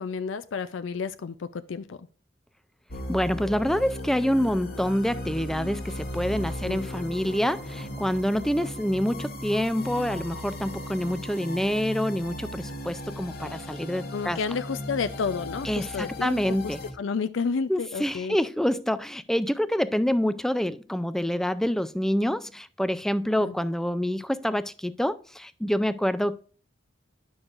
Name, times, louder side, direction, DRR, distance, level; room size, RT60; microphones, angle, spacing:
voice 1, 0.0-2.0 6.6-6.9 14.1-18.4 23.4-23.5, left 5 dB, 70° left, 0.4 m, -31 dB
sound 1, 2.9-16.9, left 1 dB, 50° left, 1.1 m, -37 dB
voice 2, 3.1-14.4 15.6-16.8 17.7-26.4, equal, ahead, 0.3 m, -27 dB
10.0 x 6.3 x 2.5 m
head